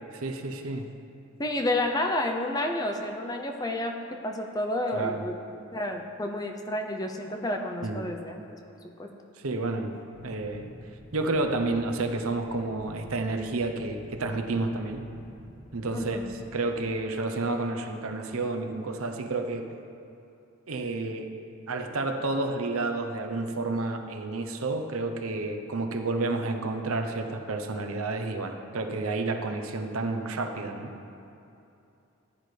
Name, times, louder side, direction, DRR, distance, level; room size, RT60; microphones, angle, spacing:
voice 1, 0.1-0.9 4.9-5.3 7.8-8.0 9.4-9.9 10.2-10.7 11.1-15.0 15.7-16.2 16.5-19.7 20.7-21.3 21.7-30.9, right 2 dB, 75° right, 5 dB, 0.8 m, -30 dB
voice 2, 1.4-5.4 5.7-8.4 9.0-9.1 15.9-16.3, left 1 dB, 15° left, 3 dB, 0.5 m, -30 dB
sound 1, 10.1-16.5, equal, 10° right, 1.9 m, -48 dB
14.5 x 10.0 x 3.3 m, 2.8 s
head